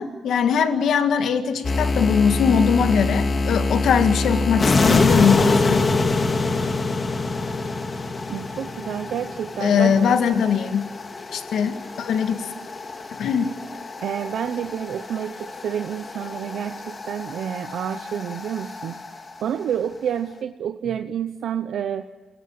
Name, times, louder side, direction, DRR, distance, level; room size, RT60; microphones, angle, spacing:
voice 1, 0.0-5.8 9.6-10.9 11.3-12.5 13.2-13.5, left 7 dB, 70° left, 7 dB, 2.1 m, -21 dB
sound 1, 1.6-19.4, left 3 dB, 30° left, 2.0 m, -25 dB
voice 2, 8.3-10.1 14.0-19.0 19.4-22.1, right 9 dB, 70° right, 9 dB, 0.9 m, -29 dB
28.0 x 18.5 x 8.8 m, 1.4 s
wide cardioid pair, 155°, 0 cm